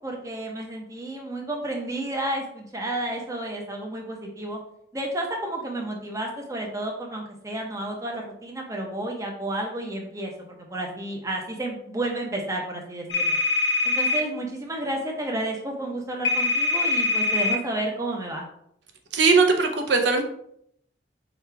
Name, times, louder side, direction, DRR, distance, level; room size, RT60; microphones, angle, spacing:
voice 1, 0.0-4.6 4.9-10.3 10.7-13.4 13.8-18.4, right 1 dB, 15° right, 0 dB, 0.7 m, -31 dB
sound 1, 13.1-14.2 16.2-17.6, left 3 dB, 65° left, 0.8 m, -23 dB
voice 2, 19.1-20.2, right 4 dB, 65° right, 3 dB, 0.6 m, -19 dB
4.9 x 2.3 x 4.5 m, 0.71 s
head